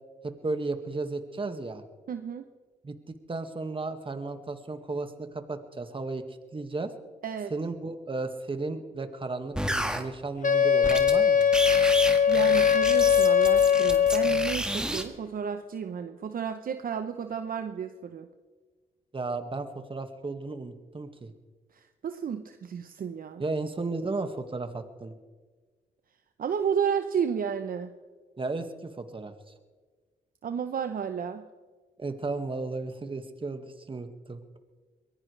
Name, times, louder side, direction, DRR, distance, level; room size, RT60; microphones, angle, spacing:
voice 1, 0.2-1.8 2.8-6.9 7.5-11.5 19.1-21.3 23.4-25.1 28.4-29.3 32.0-34.6, right 3 dB, 30° right, 7 dB, 1.9 m, -34 dB
voice 2, 2.1-2.4 7.2-7.5 12.3-18.3 21.7-23.4 26.4-27.9 30.4-31.5, right 7 dB, 55° right, 8 dB, 0.9 m, -32 dB
sound 1, 9.6-10.0 10.8-11.1 11.4-15.0, right 1 dB, 5° right, 1.8 m, -31 dB
Wind instrument woodwind instrument, 10.4-14.6, left 8 dB, 50° left, 1.0 m, -21 dB
22.5 x 16.0 x 3.4 m, 1.4 s
supercardioid pair, 60°, 17 cm